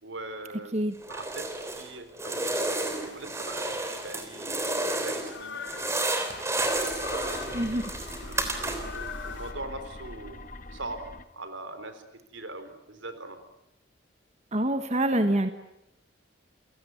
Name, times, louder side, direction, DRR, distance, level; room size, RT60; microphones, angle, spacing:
voice 1, 0.0-0.7 1.1-2.6 2.9-4.7 5.0-5.6 6.8-7.5 8.2-10.4 10.7-11.1 11.3-12.0 12.3-13.4, right 2 dB, 85° right, 10 dB, 4.0 m, -41 dB
sound 1, 1.0-1.9 2.2-5.4 5.6-9.0, right 2 dB, 15° right, 3.2 m, -31 dB
sound 2, 2.5-9.5, left 5 dB, 75° left, 3.4 m, -43 dB
sound 3, 6.3-11.3, left 1 dB, 45° left, 1.6 m, -43 dB
voice 2, 14.5-15.5, right 1 dB, 35° right, 8 dB, 1.4 m, -25 dB
29.0 x 17.5 x 9.6 m, 0.88 s
head